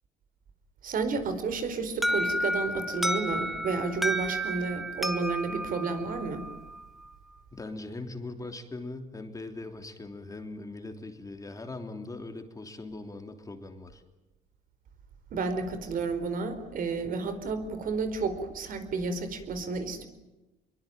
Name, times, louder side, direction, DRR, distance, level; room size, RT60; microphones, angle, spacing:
voice 1, 0.8-6.5 15.3-20.1, right 4 dB, 55° right, 10 dB, 4.5 m, -31 dB
Alarm, 2.0-6.8, equal, ahead, 1.9 m, -31 dB
voice 2, 7.5-14.0, left 2 dB, 20° left, 6 dB, 3.2 m, -40 dB
24.0 x 23.0 x 9.1 m, 1.0 s
cardioid pair, 110°, 17 cm